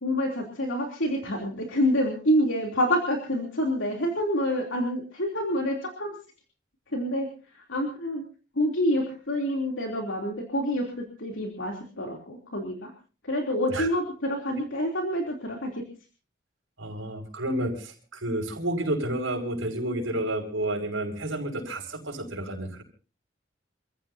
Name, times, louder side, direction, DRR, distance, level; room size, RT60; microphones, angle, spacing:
voice 1, 0.0-6.2 6.9-8.2 8.5-12.9 13.2-15.8, equal, 75° left, 1 dB, 3.3 m, -27 dB
voice 2, 16.8-22.8, right 1 dB, 85° right, 2 dB, 5.8 m, -30 dB
28.0 x 15.5 x 2.8 m, 0.37 s
head